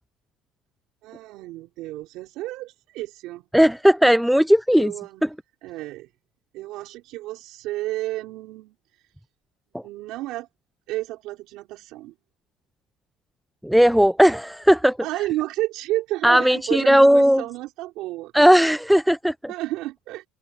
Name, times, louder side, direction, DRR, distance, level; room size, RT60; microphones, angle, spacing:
voice 1, 1.0-3.4 4.7-5.2 5.6-6.1 6.5-8.7 9.8-10.5 10.9-12.1 15.0-18.5 19.5-20.2, right 17 dB, 65° right, 3.0 m, -31 dB
voice 2, 3.5-4.9 5.2-5.3 13.6-15.0 16.2-17.4 18.3-19.3, equal, ahead, 0.4 m, -16 dB
cardioid pair, 125°, 0 cm